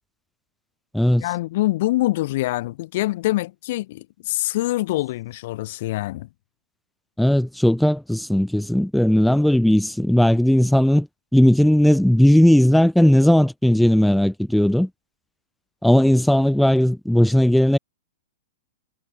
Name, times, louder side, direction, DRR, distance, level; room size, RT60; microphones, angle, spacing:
voice 1, 1.2-6.3, left 17 dB, 55° left, 5.6 m, -24 dB
voice 2, 7.2-11.1 11.3-14.9 15.8-17.8, left 1 dB, ahead, 2.6 m, -17 dB
hypercardioid pair, 110°, 0 cm